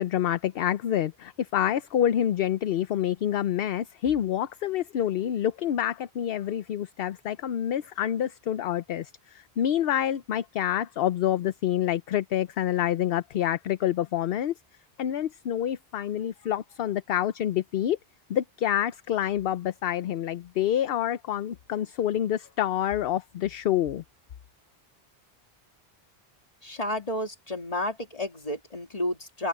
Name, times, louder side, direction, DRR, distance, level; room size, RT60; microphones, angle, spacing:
voice 1, 0.0-14.5 15.0-18.0 18.3-24.0, left 11 dB, 70° left, 0.8 m, -27 dB
voice 2, 26.6-29.5, left 1 dB, 35° left, 2.6 m, -31 dB
omnidirectional pair, 1.1 m